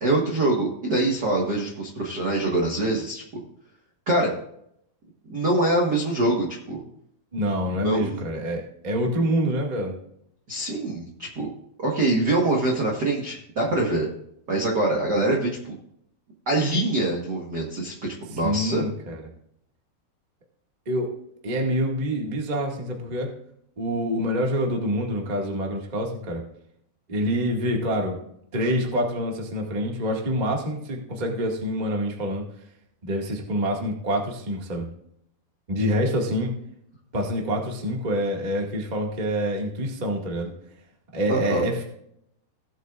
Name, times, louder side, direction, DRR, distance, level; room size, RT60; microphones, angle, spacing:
voice 1, 0.0-3.4 4.1-4.3 5.3-6.8 7.7-8.2 10.5-11.5 11.8-14.1 14.5-15.7 16.5-18.8 41.3-41.6, right 2 dB, 90° right, -1 dB, 0.9 m, -24 dB
voice 2, 7.3-9.9 18.4-19.2 20.8-21.1 21.4-23.3 23.8-26.4 27.1-28.2 28.5-32.4 33.0-34.8 35.7-36.5 37.1-40.5 41.1-41.8, equal, 60° right, 0 dB, 0.4 m, -26 dB
18.0 x 8.2 x 2.5 m, 0.73 s
omnidirectional pair, 4.6 m